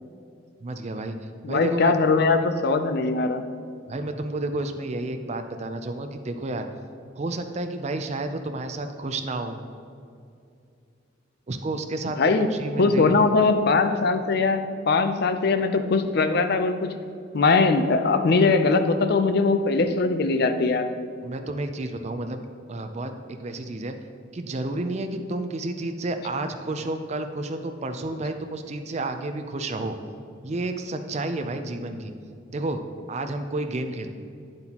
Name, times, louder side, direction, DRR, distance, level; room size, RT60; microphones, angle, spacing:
voice 1, 0.6-1.2 1.5-2.0 3.9-6.7 7.2-9.6 11.5-13.2 21.2-22.4 22.7-24.0 24.3-29.9 30.4-32.1 32.5-32.8 33.1-34.1, right 2 dB, 35° right, 6 dB, 0.5 m, -31 dB
voice 2, 1.4-3.4 12.2-12.5 12.8-16.9 17.3-20.9, left 3 dB, 55° left, 8 dB, 0.5 m, -21 dB
9.1 x 7.8 x 2.9 m, 2.4 s
head